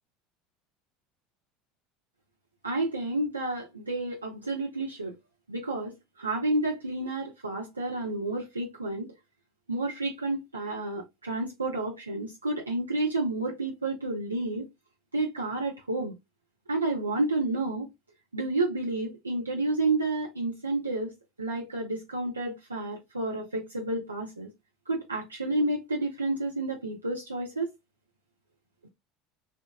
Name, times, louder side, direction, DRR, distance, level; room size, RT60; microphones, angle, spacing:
voice 1, 2.6-5.1 5.5-9.1 9.7-14.6 15.1-16.1 16.7-17.9 18.3-21.1 21.4-24.5 24.9-27.7, right 2 dB, 85° right, 0.5 m, -30 dB
2.8 x 2.2 x 2.2 m
figure-of-eight pair, 70°, 0 cm